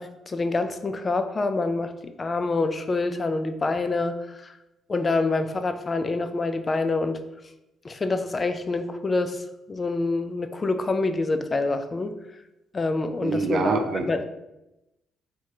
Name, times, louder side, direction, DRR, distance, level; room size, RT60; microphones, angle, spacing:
voice 1, 0.0-1.9 2.2-4.5 4.9-7.2 7.8-9.4 9.7-12.1 12.7-14.2, left 3 dB, 30° left, 9 dB, 0.4 m, -26 dB
voice 2, 13.2-14.2, right 4 dB, 60° right, 6 dB, 0.5 m, -26 dB
3.6 x 2.8 x 4.7 m, 0.92 s
cardioid pair, 90°, 0 cm